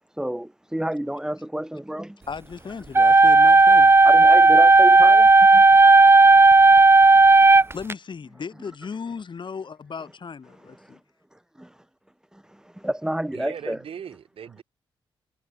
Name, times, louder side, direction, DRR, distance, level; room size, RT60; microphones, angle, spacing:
voice 1, 0.1-2.3 4.0-7.8 10.5-11.0 11.3-11.8 12.3-13.8, right 1 dB, 5° right, 3.2 m, -32 dB
voice 2, 2.3-3.9 7.7-11.0, left 5 dB, 55° left, 4.2 m, -36 dB
sound 1, 3.0-7.9, right 3 dB, 25° right, 0.9 m, -13 dB
voice 3, 13.3-14.6, right 8 dB, 70° right, 5.9 m, -38 dB
cardioid pair, 65°, 10 cm